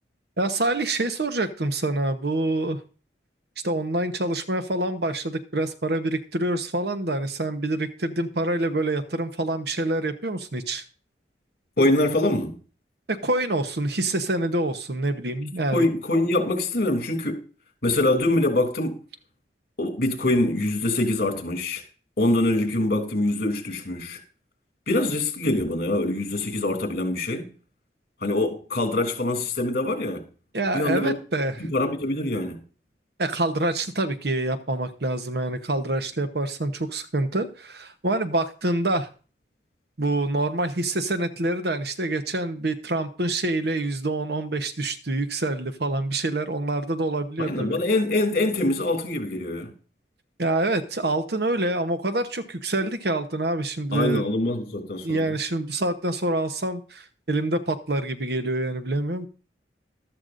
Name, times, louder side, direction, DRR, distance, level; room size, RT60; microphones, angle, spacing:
voice 1, 0.4-2.8 3.6-10.8 13.1-15.9 30.5-31.7 33.2-39.1 40.0-47.8 50.4-54.3 55.0-59.3, right 2 dB, 65° right, 1.0 m, -26 dB
voice 2, 11.8-12.6 15.7-17.4 17.8-19.0 19.8-21.8 22.2-24.2 24.9-27.5 28.2-30.2 30.7-31.2 31.6-32.6 47.5-49.7 53.9-55.2, left 2 dB, 55° left, 3.0 m, -24 dB
14.0 x 13.0 x 2.6 m
head